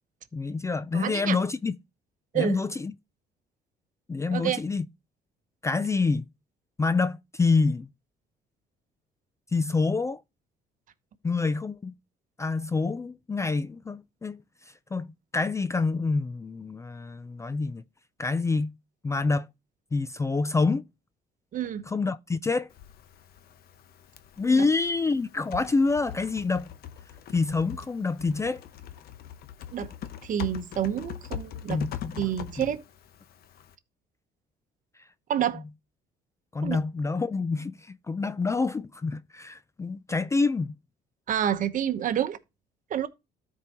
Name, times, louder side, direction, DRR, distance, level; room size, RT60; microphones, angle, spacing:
voice 1, 0.3-1.7 2.3-2.9 4.1-4.8 5.6-6.3 6.8-7.9 9.5-10.2 11.2-11.9 12.4-14.4 14.9-17.8 18.2-18.7 19.0-19.5 19.9-20.8 21.9-22.7 24.4-26.7 27.3-28.6 31.7-32.3 32.6-32.7 36.5-40.8, left 4 dB, 15° left, 0.4 m, -27 dB
voice 2, 0.9-1.4 2.3-2.6 4.3-4.6 21.5-21.9 24.6-24.7 29.7-29.9 30.2-31.8 32.2-32.8 35.3-35.6 36.6-36.8 41.3-42.4 42.9-43.1, right 10 dB, 50° right, 1.0 m, -28 dB
Typing, 22.7-33.8, left 10 dB, 65° left, 0.9 m, -42 dB
13.5 x 4.6 x 2.9 m
cardioid pair, 110°, 17 cm